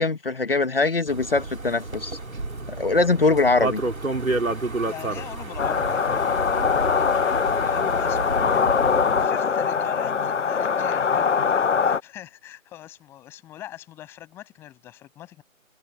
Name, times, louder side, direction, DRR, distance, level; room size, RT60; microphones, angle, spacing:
voice 1, 0.0-2.2 2.7-3.8, left 3 dB, 45° left, 1.5 m, -22 dB
sound 1, 1.1-9.3, right 2 dB, 80° right, 4.0 m, -30 dB
voice 2, 4.9-6.2 7.7-11.3 11.6-15.4, left 13 dB, 5° left, 7.9 m, -41 dB
sound 2, 5.6-12.0, left 6 dB, 60° left, 0.6 m, -22 dB
figure-of-eight pair, 170°, 41 cm